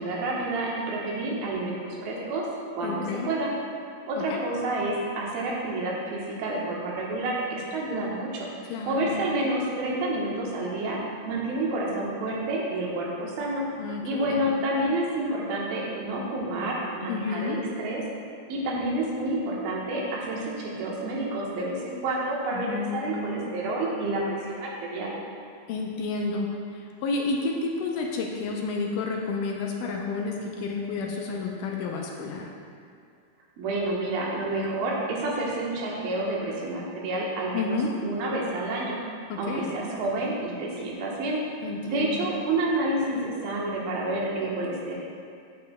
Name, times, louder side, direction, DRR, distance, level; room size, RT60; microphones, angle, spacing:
voice 1, 0.0-1.8 2.0-2.4 2.8-3.5 4.1-8.5 8.9-11.0 11.3-13.6 14.0-18.0 18.5-25.1 33.6-37.8 38.0-39.0 39.4-41.4 41.9-44.9, right 2 dB, 85° right, -4 dB, 2.9 m, -29 dB
voice 2, 2.8-3.3 4.2-4.5 8.7-9.3 13.8-14.5 17.1-17.6 22.5-23.7 25.7-32.5 37.5-37.9 39.3-39.7 41.6-42.2, left 3 dB, 80° left, 0 dB, 2.0 m, -31 dB
9.1 x 8.7 x 2.2 m, 2.3 s
omnidirectional pair, 4.2 m